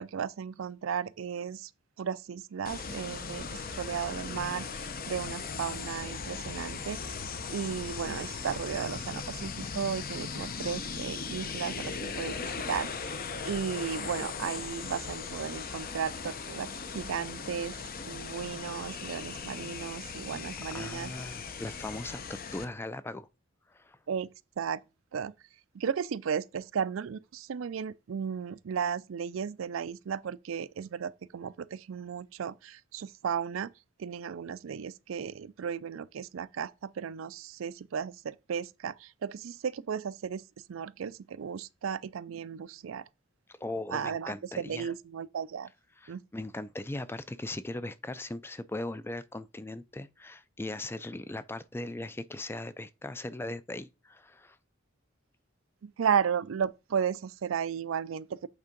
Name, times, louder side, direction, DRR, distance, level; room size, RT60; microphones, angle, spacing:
voice 1, 0.0-1.7 2.0-7.0 7.5-12.9 13.4-16.7 16.9-17.8 18.1-21.1 24.1-24.3 24.6-24.8 25.1-25.3 25.7-33.7 34.0-40.4 40.7-43.0 43.9-45.7 46.1-46.2 55.8-58.5, right 7 dB, 80° right, 0.4 m, -34 dB
sound 1, 2.7-22.7, left 5 dB, 45° left, 0.8 m, -38 dB
voice 2, 20.7-23.3 23.7-24.0 43.5-44.9 46.0-54.6, left 2 dB, 10° left, 0.4 m, -39 dB
8.2 x 3.5 x 5.2 m
head